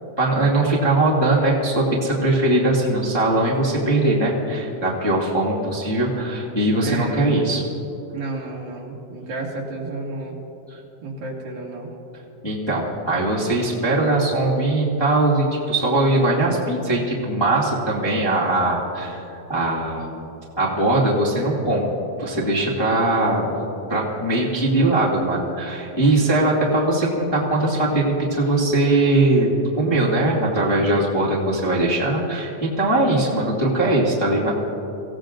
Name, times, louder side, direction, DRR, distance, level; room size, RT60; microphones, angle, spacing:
voice 1, 0.2-7.6 12.4-20.2 20.6-21.9 22.2-23.6 23.9-34.5, right 2 dB, 10° left, -6 dB, 1.3 m, -20 dB
voice 2, 6.8-7.3 8.1-10.4 11.0-11.9 32.9-33.4, right 3 dB, 75° right, -3 dB, 3.8 m, -31 dB
24.5 x 16.5 x 2.6 m, 3.0 s
omnidirectional pair, 4.1 m